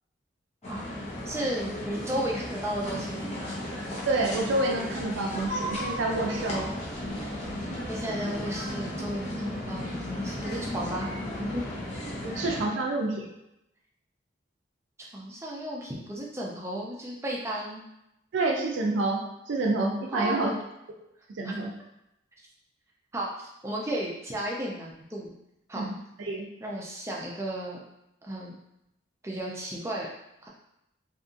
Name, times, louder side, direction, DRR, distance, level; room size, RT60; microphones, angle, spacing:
sound 1, 0.6-12.7, left 1 dB, 35° left, 0.6 m, -35 dB
voice 1, 1.3-3.3 7.9-11.1 11.4-11.6 15.0-17.8 20.1-20.5 21.4-21.5 23.1-25.3 25.7-25.9 26.6-27.8 28.2-28.6 29.2-30.1 30.4-30.5, right 1 dB, 15° right, -3 dB, 0.4 m, -34 dB
voice 2, 4.1-6.7 12.2-13.3 18.3-20.5 21.4-21.7 25.7-26.5, right 2 dB, 80° right, 1 dB, 0.4 m, -28 dB
2.7 x 2.5 x 2.4 m, 0.84 s
head